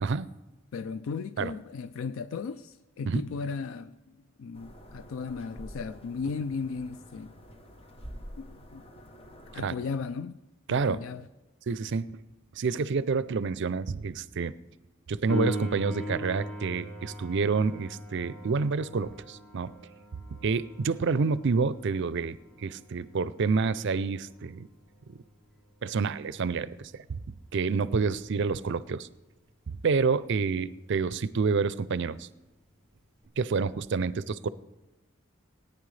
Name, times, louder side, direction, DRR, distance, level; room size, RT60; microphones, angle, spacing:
voice 1, 0.7-4.0 4.4-7.3 8.4-8.8 9.5-10.3 10.7-11.3, left 5 dB, 70° left, 0.4 m, -36 dB
sound 1, 4.5-9.6, equal, 30° left, 1.0 m, -47 dB
voice 2, 10.7-11.0 11.7-12.2 12.6-14.5 15.1-19.7 20.4-24.7 25.1-25.2 25.8-27.0 27.5-29.1 29.8-32.3 33.4-34.5, right 4 dB, 60° right, 0.5 m, -28 dB
Piano, 15.3-25.7 33.2-33.3, left 1 dB, 5° left, 1.3 m, -40 dB
18.5 x 9.9 x 3.3 m
head